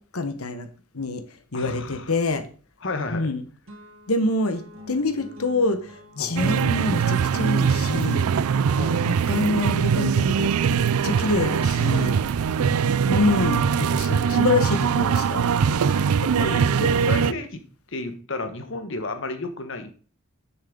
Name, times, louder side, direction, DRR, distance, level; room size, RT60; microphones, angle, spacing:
voice 1, 0.1-0.7 0.9-1.2 1.5-2.4 3.1-3.4 4.1-4.6 4.9-8.3 9.0-12.2 13.1-15.4, left 2 dB, 85° left, 9 dB, 1.3 m, -26 dB
voice 2, 1.5-2.1 2.8-3.3 6.2-6.4 8.7-9.1 12.5-13.0 15.7-17.6 17.9-20.1, left 2 dB, 60° left, 7 dB, 1.4 m, -33 dB
sound 1, 2.9-3.3 3.7-17.1, equal, 65° right, 1.9 m, -47 dB
sound 2, 6.4-17.3, right 7 dB, 85° right, 0.4 m, -22 dB
11.0 x 6.5 x 3.9 m, 0.40 s
head